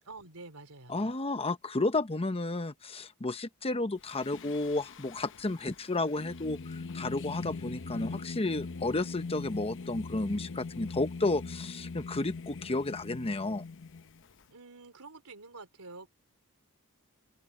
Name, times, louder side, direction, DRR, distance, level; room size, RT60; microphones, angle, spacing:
voice 1, 0.1-1.1 14.5-16.1, right 3 dB, 90° right, 3.6 m, -48 dB
voice 2, 0.9-13.6, left 2 dB, 25° left, 1.0 m, -32 dB
Singing, 4.0-14.4, left 4 dB, 60° left, 0.8 m, -42 dB
open air
head